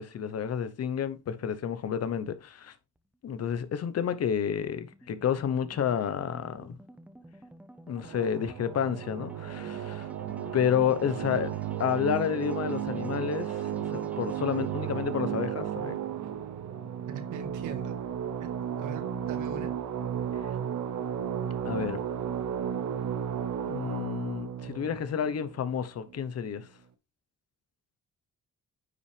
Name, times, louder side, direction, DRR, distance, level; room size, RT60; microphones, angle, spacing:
voice 1, 0.0-2.7 3.2-6.8 7.9-10.1 10.5-11.5 11.8-16.0 21.6-22.0 23.6-26.7, left 8 dB, 55° left, 1.0 m, -30 dB
sound 1, 3.0-19.3, right 1 dB, 5° right, 1.0 m, -52 dB
sound 2, 8.0-26.1, right 9 dB, 70° right, 0.9 m, -34 dB
voice 2, 17.1-18.0 18.4-18.5 18.8-19.7, right 7 dB, 90° right, 1.8 m, -41 dB
9.5 x 5.6 x 3.4 m
cardioid pair, 90°, 30 cm